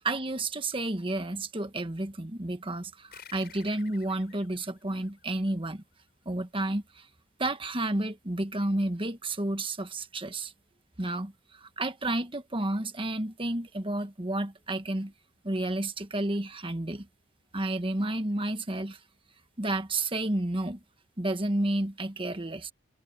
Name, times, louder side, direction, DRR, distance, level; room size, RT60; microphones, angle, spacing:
voice 1, 0.0-5.8 6.2-7.1 7.4-10.5 11.0-15.1 15.4-17.1 17.5-19.0 19.6-20.8 21.2-22.7, right 1 dB, 25° right, 1.4 m, -31 dB
sound 1, 3.1-6.1, left 8 dB, 50° left, 4.9 m, -53 dB
head